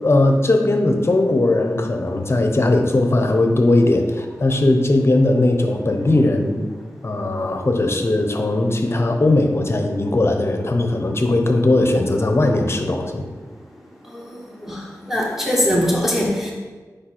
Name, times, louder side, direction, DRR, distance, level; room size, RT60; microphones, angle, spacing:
voice 1, 0.0-6.6 7.0-13.3, left 2 dB, 40° left, 5 dB, 0.7 m, -18 dB
voice 2, 15.1-16.5, equal, 5° right, -3 dB, 1.5 m, -21 dB
5.0 x 4.3 x 4.3 m, 1.4 s
wide cardioid pair, 65°, 6 cm